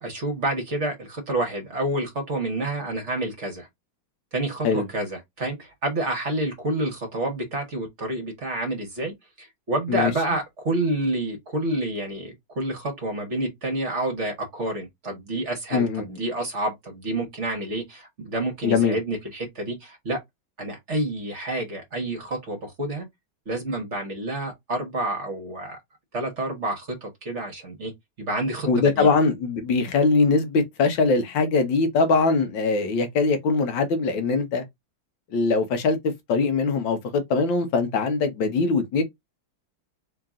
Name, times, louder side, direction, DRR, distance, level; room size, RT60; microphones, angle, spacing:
voice 1, 0.0-3.7 4.3-20.2 20.6-23.1 23.5-25.8 26.1-27.9 28.2-29.1, right 1 dB, 40° right, 1.3 m, -29 dB
voice 2, 15.7-16.1 18.6-19.0 28.7-34.6 35.3-39.0, left 4 dB, 80° left, 1.6 m, -22 dB
3.8 x 2.9 x 3.6 m
omnidirectional pair, 2.1 m